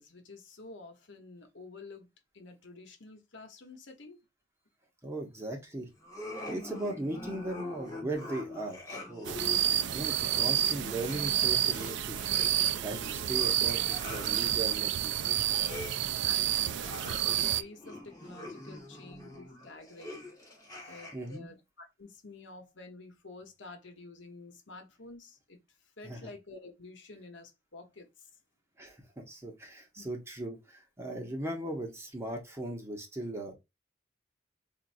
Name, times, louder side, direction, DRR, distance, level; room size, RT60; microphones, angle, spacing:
voice 1, 0.0-2.1 2.3-4.2 16.2-20.2 20.9-25.6 26.0-28.3 30.0-30.1, left 3 dB, 70° left, 1.1 m, -50 dB
voice 2, 5.0-5.9 6.5-9.4 9.9-12.2 12.8-15.4 21.1-21.5 26.0-26.3 28.8-33.5, right 1 dB, 15° right, 1.1 m, -38 dB
sound 1, 6.0-21.4, left 2 dB, 20° left, 1.6 m, -45 dB
sound 2, 9.2-17.6, right 11 dB, 65° right, 0.4 m, -29 dB
4.6 x 2.6 x 2.6 m
head